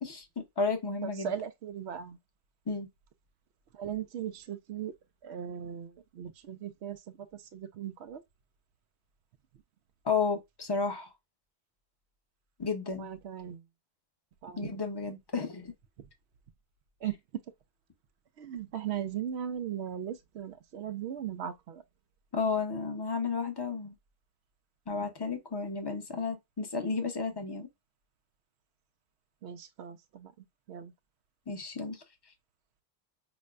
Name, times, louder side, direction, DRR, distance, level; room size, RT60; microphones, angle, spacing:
voice 1, 0.0-1.3 2.7-2.9 10.0-11.1 12.6-13.1 14.6-15.7 22.3-23.9 24.9-27.7 31.5-32.0, left 4 dB, 25° left, 0.8 m, -32 dB
voice 2, 1.0-2.2 3.7-4.9 5.2-8.2 13.0-13.6 14.4-14.7 16.0-16.1 17.0-17.4 18.4-21.8 29.4-30.9, right 9 dB, 90° right, 0.9 m, -38 dB
5.9 x 2.1 x 2.4 m
omnidirectional pair, 1.1 m